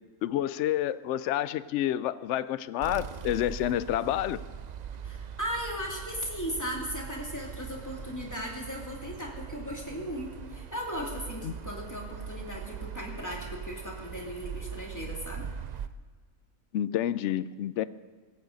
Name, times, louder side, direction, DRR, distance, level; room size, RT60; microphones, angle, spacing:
voice 1, 0.2-4.4 11.4-11.5 16.7-17.8, left 12 dB, 70° left, 16 dB, 0.8 m, -29 dB
sound 1, 2.8-15.9, right 7 dB, 70° right, 0.4 m, -41 dB
voice 2, 5.0-15.5, equal, 15° left, -2 dB, 2.7 m, -37 dB
17.0 x 15.5 x 4.0 m, 1.4 s
omnidirectional pair, 1.4 m